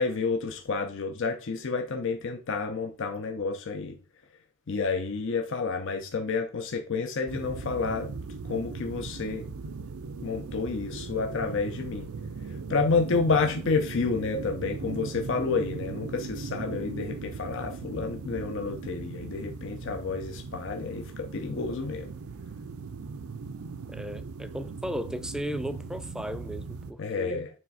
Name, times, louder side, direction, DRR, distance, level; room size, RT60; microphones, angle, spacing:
voice 1, 0.0-4.0 4.7-8.1 8.5-9.5 10.2-12.1 12.7-22.1 27.0-27.5, left 4 dB, 60° left, 0.6 m, -30 dB
sound 1, 7.3-26.9, right 4 dB, 80° right, 0.5 m, -39 dB
voice 2, 23.9-27.5, equal, 5° right, 0.3 m, -35 dB
7.0 x 3.3 x 4.0 m
head